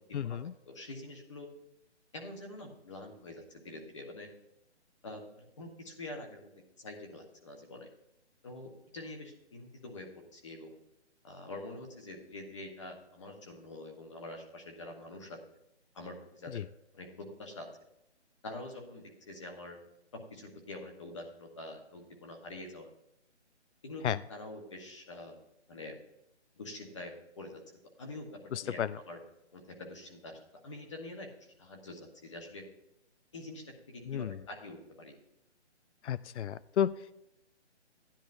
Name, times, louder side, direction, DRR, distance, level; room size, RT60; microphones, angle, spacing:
voice 1, 0.1-0.5 16.5-16.6 24.0-24.2 28.5-29.0 34.1-34.4 36.0-36.9, left 9 dB, 75° left, 17 dB, 0.5 m, -32 dB
voice 2, 0.7-1.5 2.1-4.3 5.0-6.5 6.8-7.9 8.4-10.1 10.3-10.8 11.2-15.4 15.9-16.6 16.9-17.1 17.4-17.7 18.4-19.8 20.3-22.9 23.8-25.4 25.7-26.0 26.6-27.6 28.0-28.8 29.1-29.2 29.5-32.6 33.3-35.1, left 2 dB, 25° left, 2 dB, 1.1 m, -46 dB
15.5 x 10.0 x 2.6 m, 0.85 s
hypercardioid pair, 170°, 35 cm